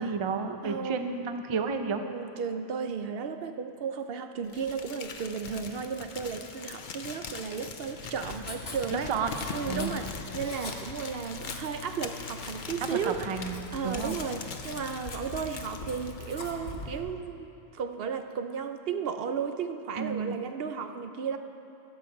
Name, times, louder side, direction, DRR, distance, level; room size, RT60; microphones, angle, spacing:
voice 1, 0.0-2.0 8.9-9.3 9.7-9.9 12.8-14.2 20.0-20.4, right 5 dB, 35° right, 7 dB, 0.5 m, -31 dB
voice 2, 0.6-1.2 2.0-10.1 10.3-21.4, right 6 dB, 70° right, 7 dB, 0.8 m, -34 dB
Crumpling crinkling, 4.5-16.6, left 5 dB, 55° left, 0.8 m, -42 dB
Writing, 8.0-17.0, left 3 dB, 75° left, 1.4 m, -43 dB
15.5 x 5.6 x 7.2 m, 2.7 s
omnidirectional pair, 1.0 m